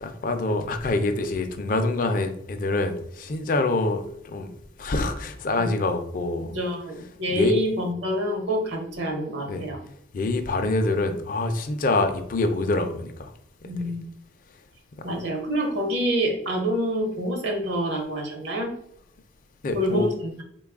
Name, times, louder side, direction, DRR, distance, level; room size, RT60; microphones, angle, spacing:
voice 1, 0.0-4.5 4.8-6.6 7.3-7.5 9.5-9.7 10.1-13.3 19.6-20.1, left 2 dB, 45° left, 0.4 m, -25 dB
voice 2, 6.5-9.8 13.6-14.1 15.0-18.7 19.7-20.4, equal, 70° right, 0.9 m, -27 dB
3.8 x 2.3 x 3.5 m
head